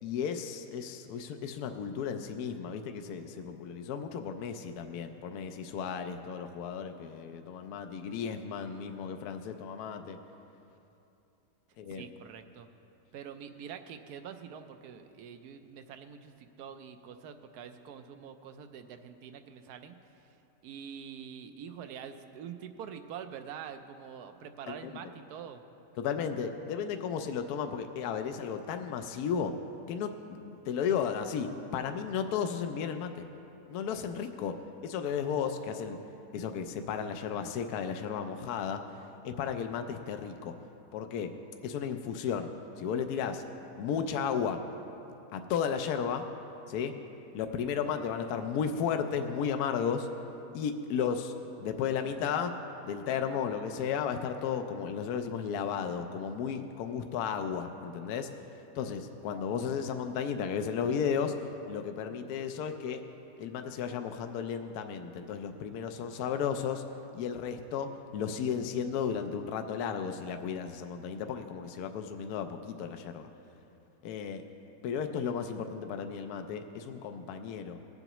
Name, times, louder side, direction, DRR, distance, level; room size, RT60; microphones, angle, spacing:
voice 1, 0.0-10.2 11.8-12.0 24.7-24.8 26.0-29.5 29.9-33.3 33.7-34.5 34.8-36.0 36.3-38.8 39.2-40.5 40.9-41.3 41.6-42.5 42.8-43.4 43.8-44.6 45.3-46.2 46.7-46.9 47.3-50.1 50.5-51.3 51.6-52.6 52.8-58.3 58.7-61.3 61.7-63.0 63.4-66.8 67.1-73.3 74.0-74.5 74.8-77.8, left 7 dB, 75° left, 7 dB, 1.0 m, -34 dB
voice 2, 11.9-12.7 13.1-20.0 20.6-25.6, right 8 dB, 75° right, 8 dB, 1.1 m, -45 dB
18.5 x 7.9 x 3.0 m, 2.9 s
omnidirectional pair, 1.8 m